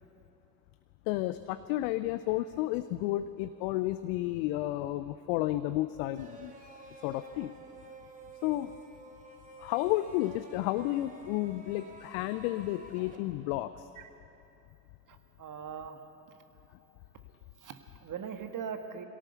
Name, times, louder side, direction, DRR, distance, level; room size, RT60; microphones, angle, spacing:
voice 1, 1.1-6.5 7.0-7.5 8.4-8.7 9.6-13.9, left 15 dB, 65° left, 12 dB, 0.7 m, -32 dB
sound 1, 6.1-13.2, right 2 dB, 20° right, 2.9 m, -51 dB
voice 2, 15.1-16.0 16.3-16.4 17.6-19.0, right 7 dB, 45° right, 7 dB, 1.8 m, -41 dB
22.0 x 17.5 x 6.9 m, 2.9 s
figure-of-eight pair, 55°, 45 cm